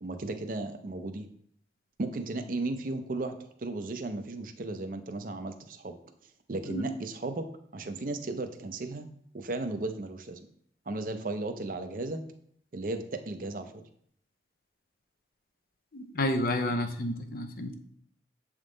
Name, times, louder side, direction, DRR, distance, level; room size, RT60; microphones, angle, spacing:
voice 1, 0.0-1.3 2.0-3.3 3.6-5.9 6.5-7.4 7.7-9.0 9.3-10.4 10.9-12.2 12.7-13.7, right 2 dB, 50° right, 8 dB, 0.5 m, -35 dB
voice 2, 15.9-17.7, left 1 dB, 50° left, 7 dB, 0.6 m, -30 dB
7.3 x 3.6 x 3.8 m, 0.65 s
head